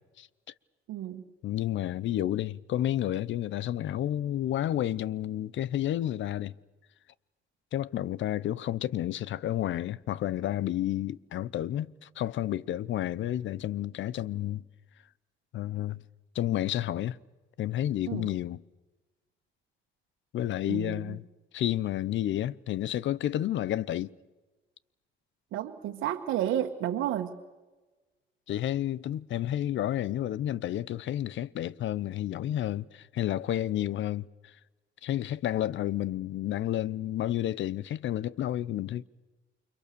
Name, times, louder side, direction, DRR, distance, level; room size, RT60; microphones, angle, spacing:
voice 1, 0.9-1.2 18.0-18.3 20.7-21.2 25.5-27.3, right 11 dB, 90° right, 1.6 m, -31 dB
voice 2, 1.4-6.5 7.7-14.6 15.5-16.0 16.3-17.2 17.6-18.6 20.3-21.2 21.5-24.1 28.5-34.5 35.0-39.0, left 12 dB, 70° left, 0.8 m, -31 dB
29.5 x 25.5 x 6.9 m
cardioid pair, 90°, 20 cm